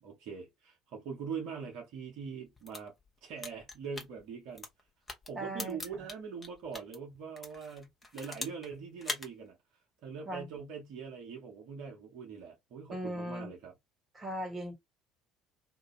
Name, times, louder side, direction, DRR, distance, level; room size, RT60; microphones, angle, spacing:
voice 1, 0.0-2.9 3.2-4.7 5.3-9.6 10.0-13.7, right 6 dB, 60° right, 0.8 m, -42 dB
sound 1, 2.5-7.0 7.4-8.7 9.0-9.3, left 2 dB, 20° left, 1.0 m, -42 dB
voice 2, 5.3-5.8 10.3-10.5 12.9-13.5 14.1-14.7, equal, 25° right, 1.1 m, -38 dB
2.5 x 2.1 x 3.0 m
figure-of-eight pair, 55°, 0 cm